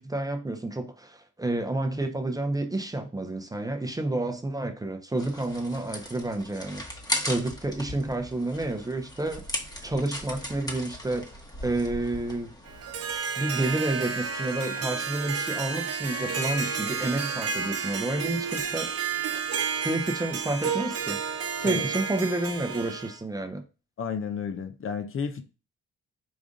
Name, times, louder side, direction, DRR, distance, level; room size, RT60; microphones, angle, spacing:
voice 1, 0.0-6.8 7.2-11.3 11.6-12.5 13.4-19.1 19.8-21.2 21.6-23.6, right 2 dB, 10° right, 0.7 m, -30 dB
sound 1, 5.2-13.2, equal, 15° left, 1.1 m, -37 dB
Harp, 12.7-23.2, right 6 dB, 55° right, 0.9 m, -31 dB
voice 2, 24.0-25.4, left 6 dB, 45° left, 0.7 m, -32 dB
5.2 x 2.4 x 3.7 m
cardioid pair, 90°, 30 cm